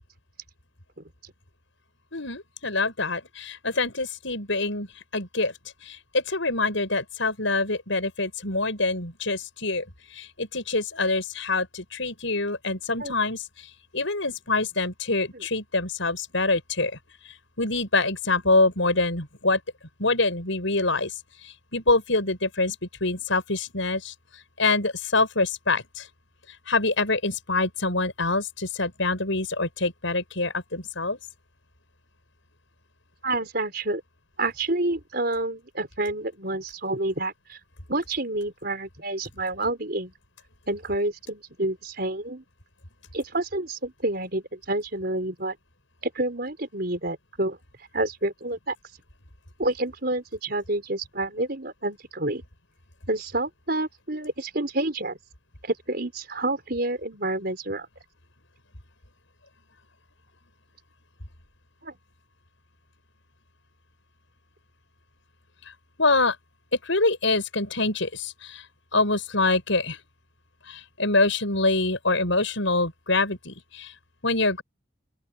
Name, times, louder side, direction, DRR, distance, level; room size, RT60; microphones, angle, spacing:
voice 1, 2.1-5.5 5.8-9.8 10.1-16.9 17.2-19.6 20.0-22.8 23.0-26.1 26.5-31.2 66.0-66.4 66.7-68.6 68.9-70.0 70.6-73.9 74.2-74.6, left 3 dB, 70° left, 6.2 m, -25 dB
voice 2, 33.2-34.0 34.4-37.6 37.9-40.1 40.7-42.4 43.1-45.6 46.2-47.6 47.9-48.8 49.6-52.4 53.1-55.2 55.6-57.9 61.8-62.0, right 2 dB, 50° right, 5.2 m, -28 dB
open air
head